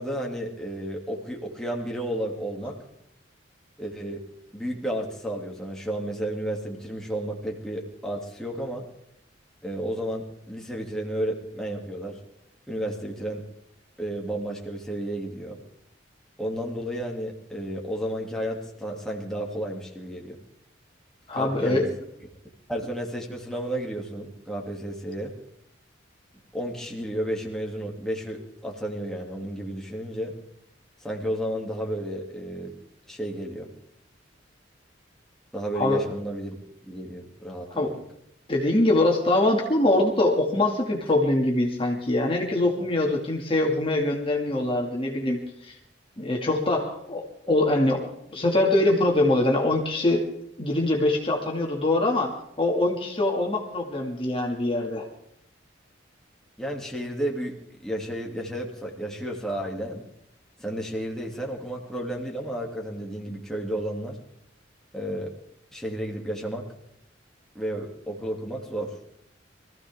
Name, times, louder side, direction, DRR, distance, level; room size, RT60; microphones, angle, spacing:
voice 1, 0.0-2.8 3.8-4.2 4.5-8.8 9.6-12.2 12.7-13.5 14.0-15.6 16.4-20.4 21.3-21.9 22.7-25.3 26.5-30.3 31.0-32.7 33.1-33.7 35.5-38.0 56.6-60.0 60.6-64.2 64.9-65.3 65.7-66.7 67.5-69.2, right 1 dB, 5° left, -1 dB, 2.6 m, -32 dB
voice 2, 21.3-21.8 35.7-36.0 37.7-37.9 38.5-45.8 46.2-50.2 50.6-55.1, left 2 dB, 30° left, 0 dB, 2.4 m, -23 dB
24.0 x 15.5 x 3.7 m, 0.75 s
head